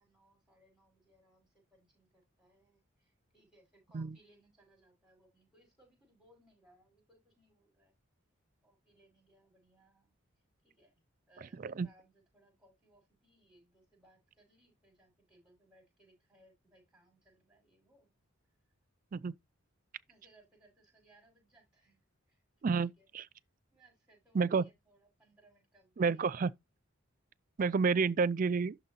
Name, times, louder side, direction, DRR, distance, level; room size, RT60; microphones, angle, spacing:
voice 1, 0.0-7.9 8.6-10.1 10.6-11.0 11.3-18.1 20.1-22.0 22.3-22.4 22.7-23.1 23.7-26.3, right 1 dB, 5° right, 5.1 m, -67 dB
voice 2, 22.6-23.3 24.3-24.7 26.0-26.5 27.6-28.8, right 5 dB, 40° right, 0.3 m, -30 dB
11.5 x 4.0 x 2.8 m
head